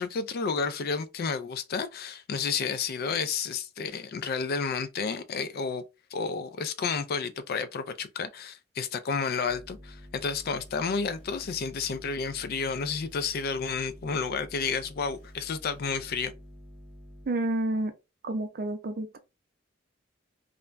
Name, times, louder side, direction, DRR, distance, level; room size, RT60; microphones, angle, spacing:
voice 1, 0.0-5.8 6.1-16.3, left 5 dB, 50° left, 0.3 m, -31 dB
sound 1, 9.5-17.3, equal, 10° left, 1.0 m, -49 dB
voice 2, 17.3-17.9 18.2-19.2, right 1 dB, 50° right, 0.5 m, -29 dB
2.4 x 2.1 x 3.1 m
head